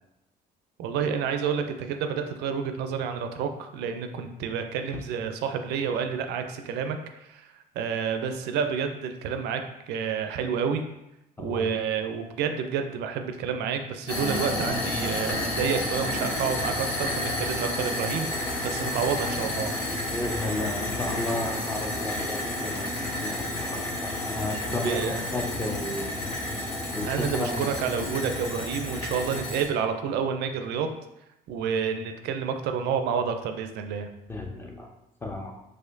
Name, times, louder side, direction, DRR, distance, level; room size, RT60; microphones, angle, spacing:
voice 1, 0.8-7.5 7.8-9.6 9.9-10.8 11.4-19.7 24.8-25.3 27.0-30.9 31.5-34.1, right 7 dB, 80° right, 7 dB, 0.4 m, -29 dB
sound 1, 14.1-29.6, left 1 dB, 80° left, 1.2 m, -31 dB
voice 2, 20.1-22.8 23.1-26.1 26.9-27.7 34.3-34.9 35.2-35.5, left 2 dB, 15° left, 1 dB, 0.6 m, -33 dB
4.1 x 2.5 x 2.6 m, 0.89 s
cardioid pair, 110°, 17 cm